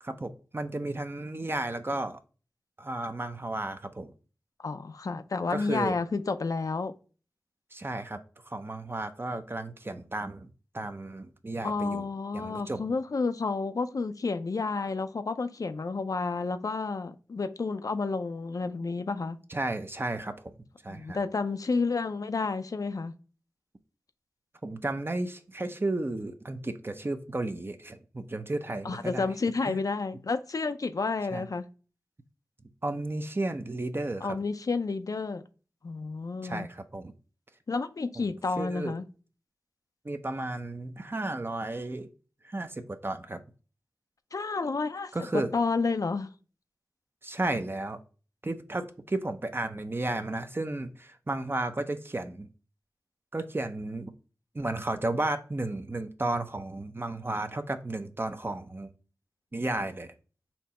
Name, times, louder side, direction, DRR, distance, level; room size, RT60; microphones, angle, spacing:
voice 1, 0.0-2.2 2.8-4.1 5.5-5.9 7.7-8.2 8.4-10.5 10.7-12.1 12.3-12.8 19.5-20.3 20.8-21.2 24.6-29.3 29.7-29.8 31.3-31.4 32.8-34.4 36.4-37.1 38.2-38.3 38.6-38.9 40.0-42.1 42.4-43.4 45.1-45.5 47.2-48.0 48.4-52.5 53.3-54.1 54.5-58.9 59.5-60.1, right 2 dB, 35° right, 0.6 m, -33 dB
voice 2, 4.6-6.9 11.6-19.4 20.9-23.1 28.8-31.7 34.2-35.4 35.8-36.7 37.7-39.1 44.3-46.3, left 4 dB, 60° left, 0.5 m, -30 dB
4.3 x 2.7 x 4.2 m
cardioid pair, 40°, 7 cm